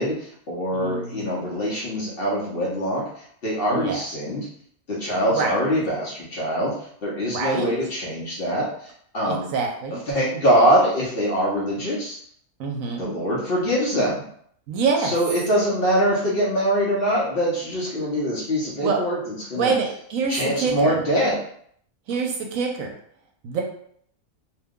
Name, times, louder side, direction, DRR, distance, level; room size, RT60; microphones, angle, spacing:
voice 1, 0.0-4.5 4.9-9.5 10.1-12.2 13.0-14.2 15.0-19.7 20.3-21.4, equal, 50° left, -5 dB, 0.8 m, -23 dB
voice 2, 0.7-1.3 3.7-4.0 5.3-5.5 7.3-7.7 9.3-10.0 12.6-13.1 14.7-15.1 18.8-19.0 19.6-21.0 22.1-22.9 23.4-23.6, right 5 dB, 75° right, 1 dB, 1.0 m, -25 dB
2.7 x 2.2 x 3.6 m, 0.64 s
omnidirectional pair, 1.5 m